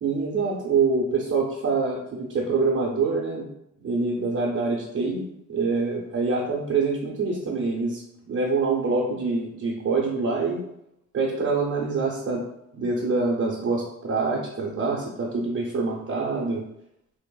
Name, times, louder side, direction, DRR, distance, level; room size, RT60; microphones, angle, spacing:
voice 1, 0.0-3.4 3.8-10.6 11.1-12.5 12.7-16.6, right 4 dB, 50° right, -5 dB, 0.6 m, -25 dB
3.2 x 2.0 x 2.2 m, 0.79 s
cardioid pair, 65°, 30 cm